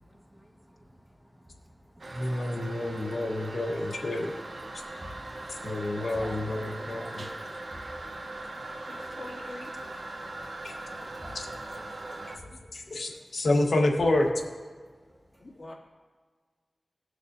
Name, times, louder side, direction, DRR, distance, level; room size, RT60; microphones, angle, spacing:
voice 1, 0.0-1.6 1.9-3.9 4.3-4.4 4.7-9.0 10.3-12.5 13.0-13.2 15.1-15.2, equal, 20° right, 0 dB, 1.5 m, -50 dB
Toilet flush, 2.0-12.4, right 2 dB, 70° right, 1.0 m, -40 dB
voice 2, 2.1-4.3 5.6-7.2 11.3-11.4 12.7-14.2, left 2 dB, 85° left, 1 dB, 1.3 m, -28 dB
voice 3, 9.0-9.7 15.4-15.7, left 2 dB, 55° left, -4 dB, 2.7 m, -43 dB
18.5 x 6.5 x 2.7 m, 1.5 s
cardioid pair, 45°, 0 cm